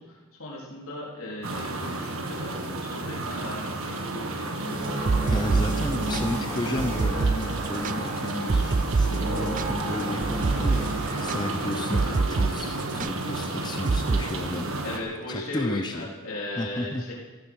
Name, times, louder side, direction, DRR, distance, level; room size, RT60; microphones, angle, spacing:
voice 1, 0.0-4.9 14.8-17.1, left 1 dB, 70° left, -4 dB, 3.6 m, -37 dB
sound 1, 1.4-15.0, right 2 dB, 65° right, 1.8 m, -32 dB
sound 2, 4.6-11.2, right 1 dB, 90° right, 6.8 m, -34 dB
sound 3, 4.8-12.5 12.8-13.1 13.9-14.2, right 4 dB, 35° right, 0.4 m, -26 dB
voice 2, 5.3-14.7 15.3-16.1 16.6-17.1, left 1 dB, 20° left, 6 dB, 0.8 m, -33 dB
15.0 x 14.5 x 6.2 m, 1.3 s
head